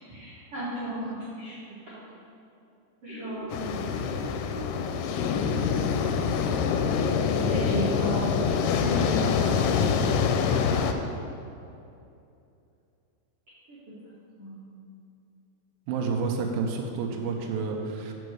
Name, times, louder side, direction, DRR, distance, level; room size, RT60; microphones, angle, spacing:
voice 1, 0.1-1.5 1.9-2.0 3.0-4.5 7.5-11.0 13.7-13.9 14.4-14.7, equal, 60° right, -12 dB, 1.6 m, -35 dB
sound 1, 3.1-10.0, right 1 dB, 60° left, 1.6 m, -41 dB
sound 2, 3.5-10.9, left 6 dB, 90° left, 2.8 m, -25 dB
voice 2, 15.9-18.1, right 4 dB, 90° right, 1 dB, 2.0 m, -29 dB
5.8 x 5.2 x 6.3 m, 2.6 s
omnidirectional pair, 5.1 m